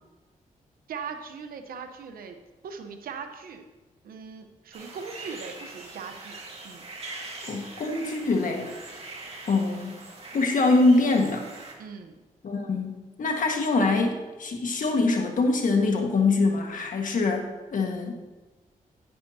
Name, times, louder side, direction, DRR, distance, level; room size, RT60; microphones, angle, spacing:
voice 1, 0.9-2.4 2.6-3.6 4.0-6.4 6.6-6.8 11.8-12.2, right 6 dB, 85° right, 6 dB, 0.9 m, -39 dB
sound 1, 4.7-11.7, right 2 dB, 40° right, 2.1 m, -42 dB
voice 2, 7.4-8.7 9.5-10.0 10.3-11.4 12.4-18.2, left 3 dB, 65° left, 3 dB, 1.6 m, -24 dB
10.0 x 9.9 x 2.8 m, 1.2 s
cardioid pair, 65°, 15 cm